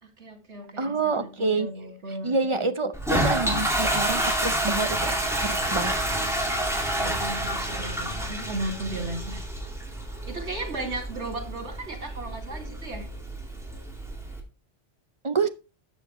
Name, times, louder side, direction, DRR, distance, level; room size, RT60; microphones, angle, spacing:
voice 1, 0.0-2.4 6.8-9.4 10.3-13.1, right 2 dB, 80° right, 3.0 m, -35 dB
voice 2, 0.8-1.7 2.2-6.0 15.2-15.5, right 4 dB, 30° right, 0.8 m, -27 dB
Toilet flush, 2.9-14.4, right 1 dB, ahead, 2.5 m, -29 dB
12.0 x 7.6 x 3.1 m
omnidirectional pair, 1.1 m